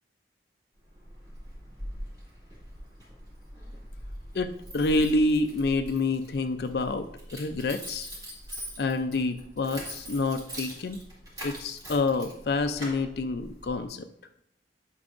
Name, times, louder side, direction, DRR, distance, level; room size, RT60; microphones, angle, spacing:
Keys jangling, 0.8-13.9, equal, 20° right, 2.3 m, -43 dB
voice 1, 4.3-7.1 7.3-8.1 8.8-11.0 11.4-14.1, left 2 dB, 60° left, 8 dB, 0.4 m, -27 dB
9.6 x 5.5 x 2.5 m, 0.74 s
head